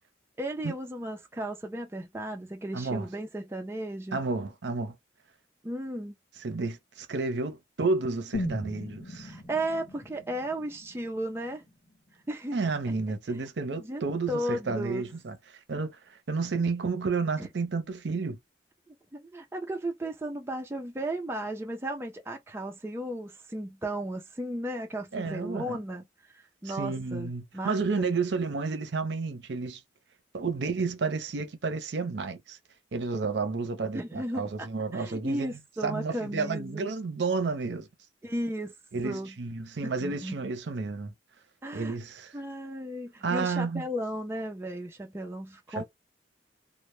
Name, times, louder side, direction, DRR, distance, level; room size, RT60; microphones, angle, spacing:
voice 1, 0.4-4.2 5.6-6.1 9.2-11.6 12.3-12.6 13.8-14.0 14.3-15.0 17.4-17.5 19.1-28.2 33.9-36.9 38.2-38.7 39.0-39.3 39.8-40.4 41.6-42.0 42.3-45.8, right 1 dB, 15° right, 0.4 m, -35 dB
voice 2, 2.7-3.1 4.1-5.0 6.4-9.3 12.5-15.4 15.7-18.4 25.1-25.8 26.6-29.8 30.3-32.6 32.9-35.5 35.8-37.9 38.9-41.1 41.7-42.3 43.2-43.8, right 4 dB, 70° right, 0.6 m, -31 dB
sound 1, 8.3-12.3 12.6-12.7, left 1 dB, 50° left, 0.9 m, -38 dB
2.0 x 2.0 x 3.0 m
head